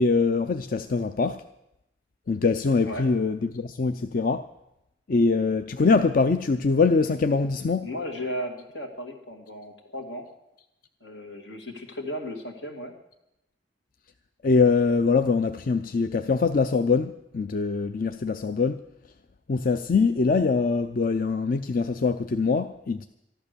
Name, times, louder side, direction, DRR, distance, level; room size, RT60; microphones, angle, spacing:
voice 1, 0.0-1.4 2.3-4.5 5.1-7.9 14.4-18.8 19.5-23.1, left 4 dB, 50° left, 0.5 m, -23 dB
voice 2, 7.8-10.3 11.0-12.9, equal, 80° left, 2.3 m, -35 dB
14.0 x 11.5 x 6.8 m
head